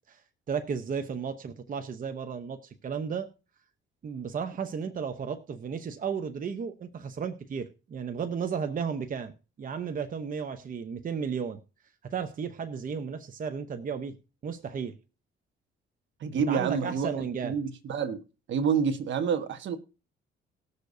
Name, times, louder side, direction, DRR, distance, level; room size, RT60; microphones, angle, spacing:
voice 1, 0.5-3.3 4.0-9.3 9.6-11.6 12.0-14.2 14.4-14.9 16.3-17.5, right 6 dB, 45° right, 8 dB, 0.8 m, -34 dB
voice 2, 16.2-18.2 18.5-19.8, right 6 dB, 70° right, 9 dB, 1.3 m, -28 dB
19.5 x 6.7 x 2.7 m, 0.33 s
cardioid pair, 90°, 20 cm